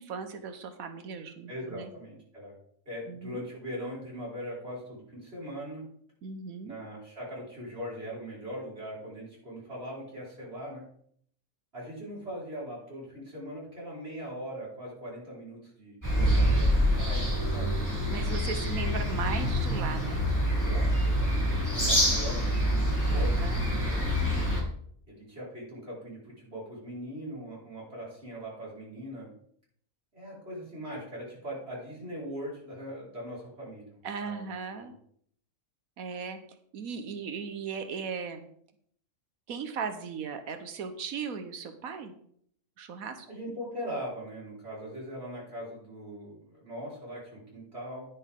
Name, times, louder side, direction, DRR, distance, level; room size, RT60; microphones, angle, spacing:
voice 1, 0.0-1.9 3.1-3.4 6.2-6.8 18.1-20.3 23.1-23.6 34.0-35.0 36.0-36.4 36.7-38.4 39.5-42.1 42.8-43.3, right 6 dB, 90° right, 8 dB, 1.4 m, -37 dB
voice 2, 1.5-2.5 2.9-5.8 6.6-10.8 11.7-17.7 20.6-23.4 23.8-24.1 25.1-29.3 30.1-34.4 43.3-48.1, equal, 45° right, -6 dB, 5.4 m, -40 dB
sound 1, 16.0-24.6, equal, 10° left, 3.7 m, -26 dB
10.5 x 10.5 x 3.7 m, 0.64 s
omnidirectional pair, 1.4 m